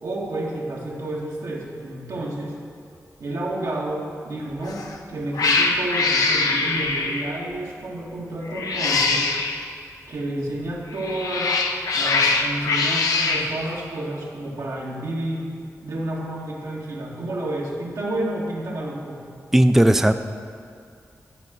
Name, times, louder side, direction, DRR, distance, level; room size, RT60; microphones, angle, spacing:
voice 1, 0.0-2.6 3.2-9.3 10.1-11.6 11.9-15.5 15.8-19.2, right 1 dB, 80° right, -3 dB, 1.7 m, -30 dB
Cat, 4.6-4.9 5.3-7.4 8.5-9.6 10.9-13.5, left 3 dB, 85° left, 0.7 m, -22 dB
voice 2, 19.5-20.1, right 1 dB, 5° right, 9 dB, 0.4 m, -15 dB
12.0 x 4.9 x 6.0 m, 2.3 s
cardioid pair, 55°, 6 cm